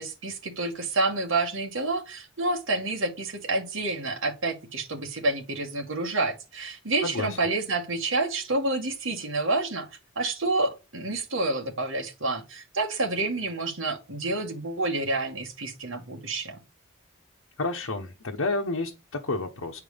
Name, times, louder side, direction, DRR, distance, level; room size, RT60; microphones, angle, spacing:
voice 1, 0.0-9.9 10.2-16.6, right 2 dB, 70° right, 2.1 m, -28 dB
voice 2, 7.0-7.4 17.6-19.8, left 2 dB, 85° left, 1.1 m, -30 dB
9.8 x 4.7 x 5.2 m
head